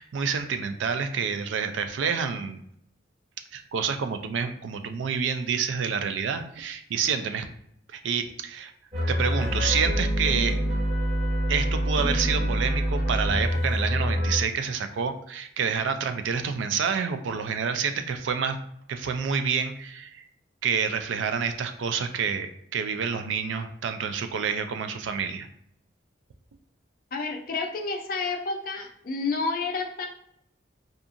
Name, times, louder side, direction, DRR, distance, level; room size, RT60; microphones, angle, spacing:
voice 1, 0.0-2.6 3.5-7.5 7.9-8.7 9.1-10.6 11.5-18.6 18.9-20.2 20.6-25.5, right 6 dB, 80° right, 8 dB, 0.3 m, -28 dB
sound 1, 8.9-14.4, equal, 35° right, 1.2 m, -26 dB
voice 2, 27.1-30.1, left 4 dB, 50° left, 3 dB, 0.4 m, -30 dB
2.7 x 2.4 x 2.5 m, 0.72 s
head